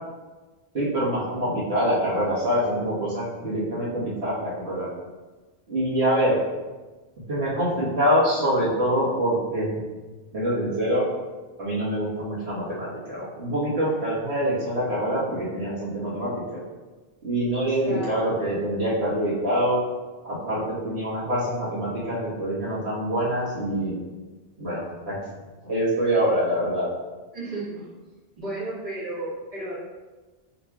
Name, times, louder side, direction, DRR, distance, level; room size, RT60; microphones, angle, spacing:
voice 1, 0.7-4.9 5.7-6.4 7.3-9.8 10.3-11.0 11.6-16.6 17.2-19.8 20.2-24.0 24.6-25.2 25.6-26.9, equal, 85° right, -9 dB, 1.6 m, -25 dB
voice 2, 17.8-18.1 27.3-27.8 28.4-29.8, right 2 dB, 35° right, -9 dB, 1.5 m, -33 dB
5.7 x 3.0 x 2.3 m, 1.2 s
omnidirectional pair, 1.1 m